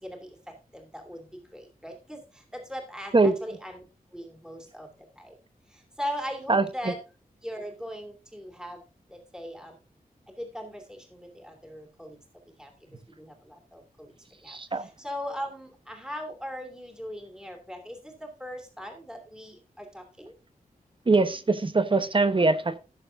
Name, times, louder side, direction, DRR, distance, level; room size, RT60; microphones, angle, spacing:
voice 1, 0.0-3.8 4.1-4.9 5.2-5.4 5.7-7.0 7.4-8.8 9.1-9.8 10.3-12.2 12.6-12.7 13.1-14.1 14.4-20.3, equal, 5° right, 2 dB, 2.9 m, -39 dB
voice 2, 6.5-6.9 14.5-14.9 21.1-22.8, right 3 dB, 35° right, 12 dB, 1.0 m, -23 dB
18.0 x 6.9 x 2.6 m, 0.31 s
wide cardioid pair, 100°, 15 cm